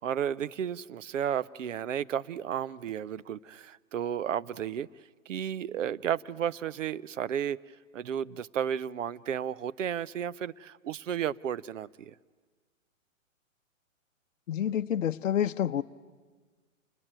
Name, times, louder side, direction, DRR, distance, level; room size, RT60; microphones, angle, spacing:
voice 1, 0.0-4.9 5.3-7.6 7.9-12.1, right 9 dB, 65° right, 18 dB, 0.8 m, -33 dB
voice 2, 14.5-15.8, left 10 dB, 70° left, 8 dB, 0.7 m, -28 dB
28.0 x 20.5 x 9.4 m, 1.4 s
hypercardioid pair, 130°, 41 cm